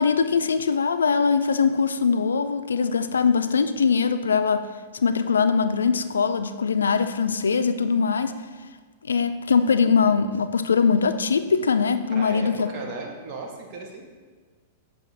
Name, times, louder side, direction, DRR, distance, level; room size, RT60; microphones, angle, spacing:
voice 1, 0.0-4.6 4.9-8.3 9.1-12.7, left 5 dB, 90° left, 11 dB, 0.3 m, -22 dB
voice 2, 12.1-14.0, right 3 dB, 50° right, 1 dB, 1.1 m, -36 dB
7.7 x 2.7 x 4.9 m, 1.4 s
hypercardioid pair, 110°, 0 cm